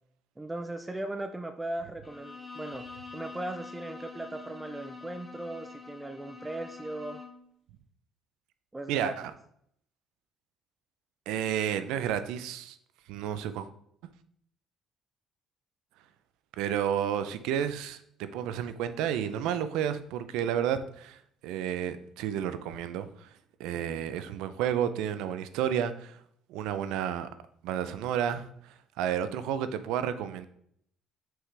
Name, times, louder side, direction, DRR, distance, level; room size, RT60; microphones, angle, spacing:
voice 1, 0.4-2.8 3.1-7.2 8.7-9.1, right 1 dB, 15° right, 7 dB, 0.4 m, -38 dB
Bowed string instrument, 2.0-7.5, left 4 dB, 10° left, 1.1 m, -45 dB
voice 2, 8.9-9.3 11.3-12.8 13.1-13.7 16.6-21.2 21.4-23.3 23.6-26.2 26.5-27.3 27.6-28.5 29.0-30.5, right 9 dB, 85° right, 12 dB, 0.5 m, -31 dB
6.1 x 4.9 x 3.3 m, 0.68 s
cardioid pair, 100°, 0 cm